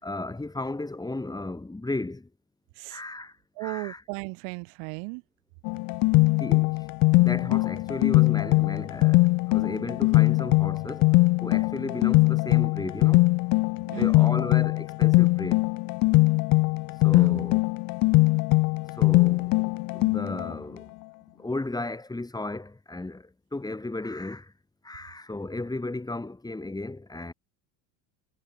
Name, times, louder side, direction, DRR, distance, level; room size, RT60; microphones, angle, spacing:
voice 1, 0.0-2.3 2.9-3.3 3.6-4.0 6.4-6.8 7.1-11.1 11.4-13.3 13.9-15.6 17.0-17.6 19.0-19.5 19.9-20.9 21.4-24.5 24.8-27.3, left 2 dB, 10° left, 6.0 m, -34 dB
voice 2, 3.6-5.2 13.9-14.3 17.1-17.4, right 38 dB, 80° right, 3.2 m, -36 dB
sound 1, 5.7-20.5, left 24 dB, 50° left, 0.5 m, -21 dB
cardioid pair, 140°, 46 cm